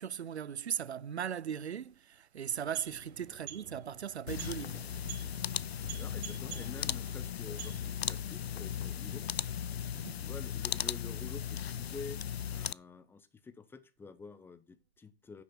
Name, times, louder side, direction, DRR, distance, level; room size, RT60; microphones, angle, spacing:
voice 1, 0.0-4.9 9.9-10.2, right 8 dB, 85° right, 0.5 m, -38 dB
sound 1, 2.4-8.2, right 9 dB, 30° right, 2.7 m, -49 dB
sound 2, 4.3-12.7, left 9 dB, 70° left, 0.5 m, -37 dB
voice 2, 6.0-9.3 10.2-15.4, left 4 dB, 5° left, 0.7 m, -48 dB
9.7 x 6.1 x 5.7 m
figure-of-eight pair, 110°, 32 cm